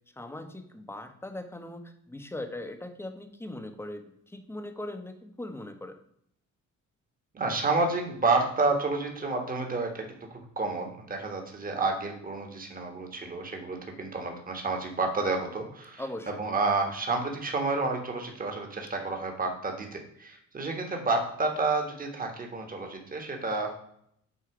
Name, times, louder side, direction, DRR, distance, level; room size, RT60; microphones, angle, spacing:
voice 1, 0.2-5.9 16.0-16.4, left 1 dB, 10° left, 6 dB, 0.9 m, -40 dB
voice 2, 7.3-23.7, right 3 dB, 30° right, 3 dB, 1.4 m, -30 dB
8.2 x 2.8 x 4.8 m, 0.70 s
cardioid pair, 90°, 30 cm